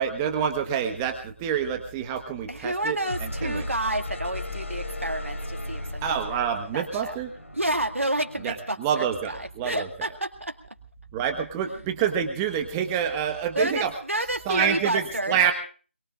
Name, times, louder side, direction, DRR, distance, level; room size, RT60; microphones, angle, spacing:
voice 1, 0.0-3.0 3.4-3.6 6.0-7.3 8.4-9.9 11.1-13.9 14.5-15.5, right 8 dB, 15° right, 5 dB, 1.3 m, -27 dB
voice 2, 2.5-6.4 6.7-7.2 7.5-10.6 13.6-15.4, right 1 dB, 85° right, 5 dB, 2.2 m, -30 dB
sound 1, 2.9-8.8, left 1 dB, 80° left, 3.6 m, -36 dB
24.5 x 22.5 x 2.5 m, 0.39 s
figure-of-eight pair, 160°, 7 cm